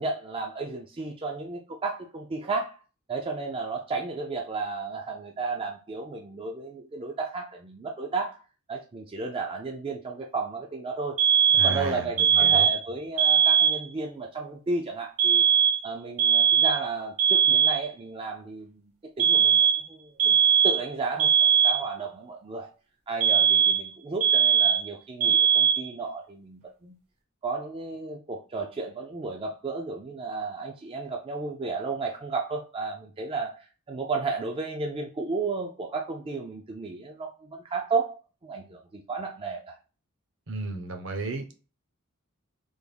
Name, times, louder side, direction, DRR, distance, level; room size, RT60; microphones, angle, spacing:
voice 1, 0.0-2.8 3.1-8.4 8.7-11.2 11.6-15.4 15.8-18.9 19.2-19.6 19.9-20.4 20.6-22.7 23.1-27.0 27.4-39.8, right 4 dB, 25° right, 0.3 m, -33 dB
sound 1, 11.2-11.8 12.2-12.8 13.2-13.8 15.2-15.9 16.2-16.9 17.2-17.9 19.2-19.9 20.2-20.9 21.2-21.9 23.2-23.9 24.2-24.9 25.2-25.9, right 8 dB, 75° right, 1.2 m, -20 dB
voice 2, 11.6-12.7 40.5-41.5, right 3 dB, 60° right, 0.7 m, -33 dB
3.5 x 2.2 x 3.3 m
head